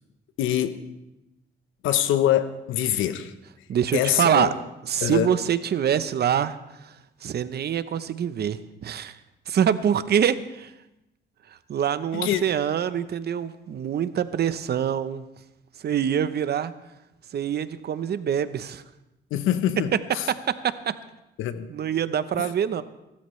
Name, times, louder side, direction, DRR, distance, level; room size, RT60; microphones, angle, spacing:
voice 1, 0.4-0.8 1.8-3.3 3.9-4.5 5.0-5.3 12.1-12.4 19.3-20.3 21.4-21.7 22.3-22.5, left 11 dB, 90° left, 0.9 m, -24 dB
voice 2, 3.7-4.5 4.9-6.6 7.2-9.2 9.5-10.7 11.7-15.2 15.8-16.7 17.3-18.8 20.3-20.9 21.7-22.8, right 9 dB, 55° right, 0.8 m, -25 dB
24.0 x 13.0 x 3.2 m
cardioid pair, 90°, 20 cm